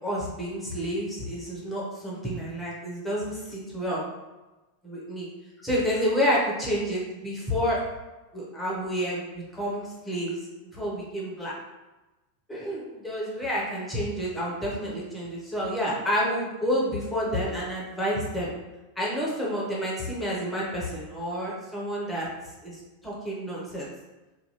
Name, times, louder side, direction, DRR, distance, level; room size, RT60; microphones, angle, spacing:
voice 1, 0.0-4.0 4.8-5.3 5.6-7.8 8.3-10.3 10.7-11.6 12.5-18.5 19.0-22.3 22.6-23.9, equal, 5° left, -5 dB, 0.9 m, -29 dB
2.7 x 2.2 x 2.9 m, 1.1 s
figure-of-eight pair, 90°, 0 cm